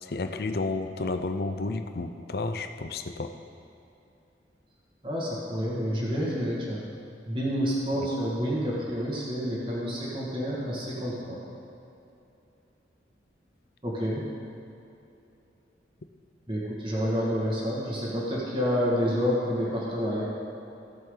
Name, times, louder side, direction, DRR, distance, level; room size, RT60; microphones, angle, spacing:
voice 1, 0.0-3.3, left 3 dB, 55° left, 8 dB, 0.6 m, -31 dB
voice 2, 5.0-6.8 7.3-11.4 13.8-14.3 16.5-20.2, equal, 25° right, -6 dB, 1.9 m, -29 dB
16.5 x 7.4 x 3.9 m, 2.8 s
head